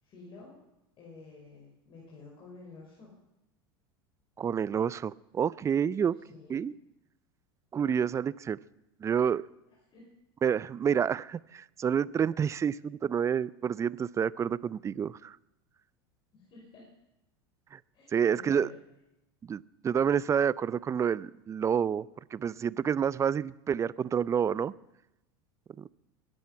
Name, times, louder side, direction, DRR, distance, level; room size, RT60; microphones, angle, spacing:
voice 1, 0.0-0.6 1.0-3.1 6.3-6.6 9.9-10.1 16.3-16.9 17.9-18.8, left 3 dB, 40° left, -3 dB, 5.5 m, -51 dB
voice 2, 4.4-6.2 6.5-6.7 7.7-8.6 9.0-9.4 10.4-15.4 17.7-17.8 18.1-18.7 19.4-22.1 22.3-24.7 25.8-25.9, right 7 dB, 25° right, 21 dB, 0.5 m, -28 dB
22.0 x 10.5 x 5.8 m, 0.92 s
hypercardioid pair, 95°, 12 cm